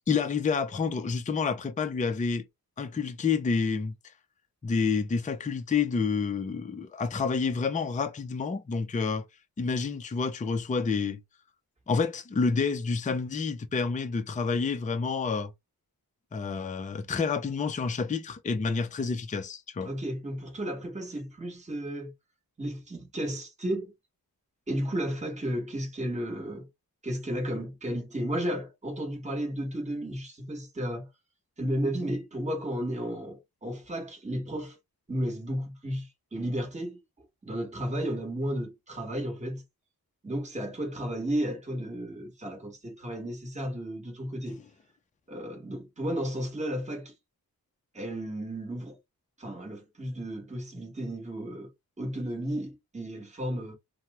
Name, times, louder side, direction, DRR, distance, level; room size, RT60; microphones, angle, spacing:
voice 1, 0.1-2.4 2.8-3.9 4.6-9.3 9.6-11.2 11.9-15.5 16.3-19.9, left 5 dB, 20° left, 0.4 m, -29 dB
voice 2, 19.8-22.1 22.6-23.9 24.7-26.7 27.0-31.1 31.6-34.8 35.1-37.0 37.4-39.6 40.2-44.6 45.3-47.1 47.9-49.0 49.4-51.7 52.0-53.7, equal, 20° right, 1.0 m, -33 dB
2.9 x 2.0 x 3.3 m
wide cardioid pair, 100°, 38 cm